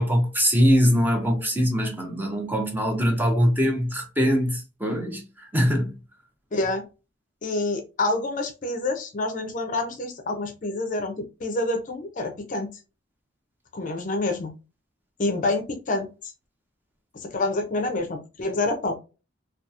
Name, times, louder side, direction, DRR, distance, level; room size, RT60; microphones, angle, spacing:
voice 1, 0.0-6.0, equal, 10° right, 0.5 m, -22 dB
voice 2, 6.5-6.8 7.4-12.7 13.7-14.5 15.2-16.1 17.1-18.9, left 2 dB, 40° left, 0.5 m, -27 dB
2.8 x 2.3 x 2.3 m
head